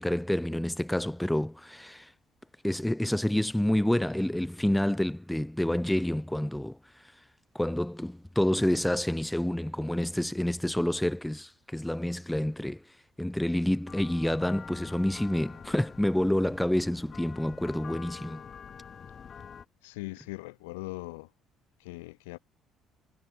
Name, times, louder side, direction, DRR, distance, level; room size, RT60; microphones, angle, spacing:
voice 1, 0.0-2.1 2.6-7.1 7.5-18.4, left 1 dB, 5° left, 0.6 m, -28 dB
sound 1, 13.9-19.7, left 7 dB, 45° left, 2.5 m, -46 dB
voice 2, 19.8-21.3 21.8-22.4, left 24 dB, 80° left, 1.6 m, -40 dB
hypercardioid pair, 55°, 0 cm